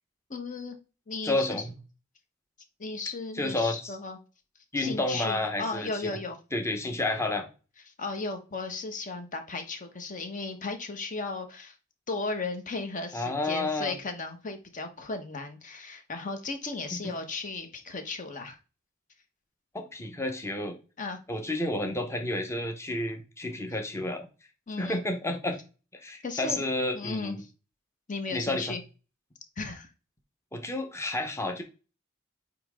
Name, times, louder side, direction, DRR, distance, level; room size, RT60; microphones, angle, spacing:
voice 1, 0.3-0.7 1.1-1.7 2.8-4.2 4.8-6.4 7.9-11.8 12.1-18.6 21.0-21.2 24.7-25.0 26.2-26.6 26.9-27.5 28.1-28.8 29.6-29.9, left 3 dB, 40° left, 6 dB, 1.2 m, -35 dB
voice 2, 1.2-1.8 3.4-3.9 4.7-6.1 6.5-7.4 13.1-14.0 16.9-17.1 19.7-20.8 21.3-24.3 24.8-25.6 25.9-27.4 28.3-28.8 30.5-31.6, left 2 dB, 15° left, 4 dB, 1.0 m, -30 dB
8.8 x 3.2 x 3.6 m, 0.33 s
head